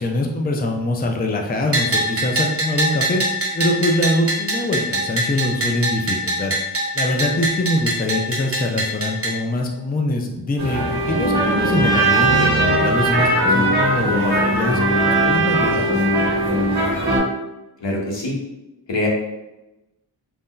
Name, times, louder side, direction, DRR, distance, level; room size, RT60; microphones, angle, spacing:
voice 1, 0.0-3.2 3.5-6.5 6.9-15.8, left 1 dB, 25° left, 2 dB, 0.4 m, -23 dB
Bell, 1.7-9.3, right 1 dB, 35° right, 0.7 m, -23 dB
sound 1, 10.6-17.2, right 1 dB, 65° right, 1.1 m, -19 dB
voice 2, 17.8-18.4 18.9-19.1, left 1 dB, 85° left, -1 dB, 0.7 m, -23 dB
2.6 x 2.1 x 3.7 m, 0.98 s
wide cardioid pair, 40°, 42 cm